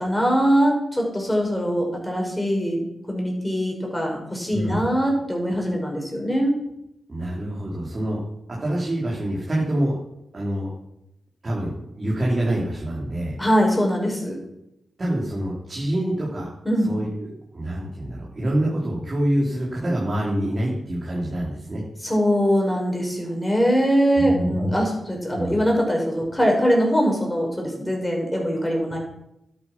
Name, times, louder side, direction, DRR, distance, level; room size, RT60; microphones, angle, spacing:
voice 1, 0.0-2.8 3.1-6.6 13.4-14.4 16.6-16.9 22.0-29.0, equal, 10° left, 0 dB, 6.0 m, -22 dB
voice 2, 7.1-8.2 8.6-10.0 10.3-10.7 11.4-13.4 15.0-16.5 16.8-21.8 24.1-24.8 25.3-25.5, right 1 dB, 35° right, -4 dB, 3.8 m, -26 dB
12.0 x 8.8 x 6.1 m, 0.84 s
cardioid pair, 65°, 0 cm